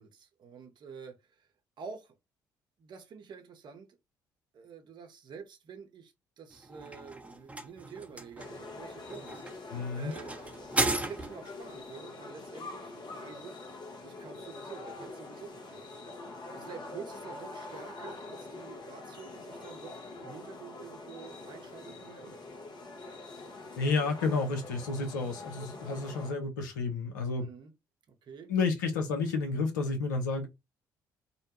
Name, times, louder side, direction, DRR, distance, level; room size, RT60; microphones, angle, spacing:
voice 1, 0.0-1.5 1.8-2.2 2.8-3.9 4.5-13.6 14.0-15.9 16.2-22.4 27.4-27.7 28.1-28.5, right 6 dB, 50° right, 0.8 m, -48 dB
sound 1, 6.5-11.6, right 2 dB, 15° right, 0.8 m, -35 dB
sound 2, 8.4-26.3, left 2 dB, 50° left, 0.9 m, -45 dB
voice 2, 9.7-10.1 23.8-27.5 28.5-30.5, left 4 dB, 85° left, 0.7 m, -31 dB
2.7 x 2.2 x 2.8 m
hypercardioid pair, 50°, 10 cm